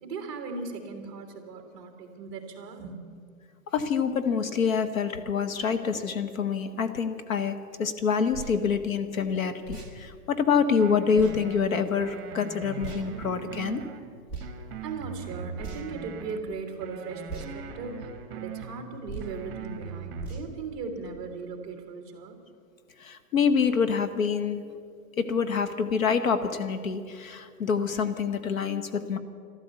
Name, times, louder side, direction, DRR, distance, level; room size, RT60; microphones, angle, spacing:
voice 1, 0.0-3.0 14.8-22.4, right 4 dB, 15° right, 4 dB, 1.4 m, -38 dB
voice 2, 3.7-13.8 23.0-24.7 25.2-29.2, left 6 dB, 60° left, 11 dB, 1.1 m, -26 dB
sound 1, 8.3-8.6 9.6-9.9 11.1-11.4 12.8-13.1 14.3-14.5 15.6-16.0 17.3-17.5 19.1-19.4 20.2-20.5, right 3 dB, 15° left, 1.0 m, -38 dB
sound 2, 10.8-11.6 12.0-14.0 14.4-16.4 16.8-18.8 19.2-20.4, right 6 dB, 40° right, 1.6 m, -40 dB
13.5 x 13.0 x 8.1 m, 2.2 s
hypercardioid pair, 180°, 47 cm